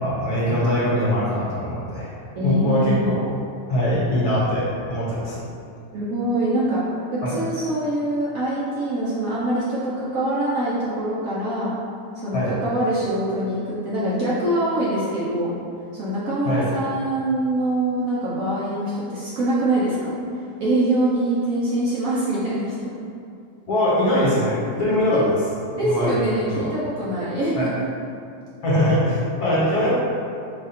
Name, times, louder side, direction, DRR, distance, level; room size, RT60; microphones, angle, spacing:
voice 1, 0.0-2.1 2.4-3.2 3.7-5.4 7.2-7.3 12.3-12.5 16.4-16.7 23.7-25.5 25.8-26.1 26.5-26.7 27.5-27.7 28.6-29.9, equal, 60° left, -7 dB, 1.5 m, -22 dB
voice 2, 2.3-3.3 5.9-6.8 7.1-11.8 12.1-15.6 15.9-20.1 20.6-22.9 25.1-25.2 25.7-27.9, right 1 dB, 60° right, -8 dB, 0.9 m, -24 dB
4.9 x 2.4 x 4.2 m, 2.4 s
omnidirectional pair, 2.0 m